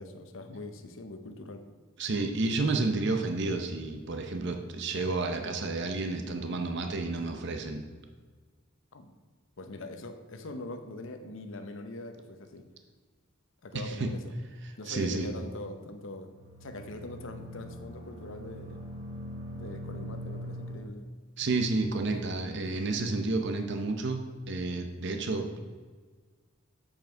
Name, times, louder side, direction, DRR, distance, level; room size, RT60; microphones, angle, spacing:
voice 1, 0.0-1.7 8.9-9.1 9.6-12.7 13.6-14.2 14.8-16.3 16.6-18.8 19.5-21.1 22.0-22.1, left 2 dB, 70° left, 7 dB, 0.8 m, -42 dB
voice 2, 2.0-7.8 13.7-14.1 14.6-15.3 21.4-25.6, right 3 dB, 60° right, 5 dB, 0.7 m, -31 dB
sound 1, 16.3-20.8, equal, 75° right, 1.9 m, -42 dB
7.4 x 5.3 x 4.5 m, 1.5 s
head